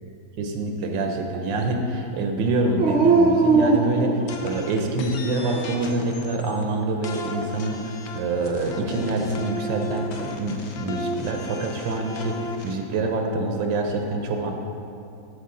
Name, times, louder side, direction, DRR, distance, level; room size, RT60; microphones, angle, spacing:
voice 1, 0.4-4.2 4.4-14.5, right 2 dB, 75° right, 3 dB, 1.4 m, -26 dB
Dog, 2.8-4.7 5.3-6.1 8.4-9.2, right 3 dB, 55° right, 0.7 m, -22 dB
sound 1, 4.3-6.6 7.0-12.7, left 2 dB, 85° left, 1.5 m, -35 dB
13.0 x 5.1 x 3.7 m, 2.6 s
omnidirectional pair, 2.1 m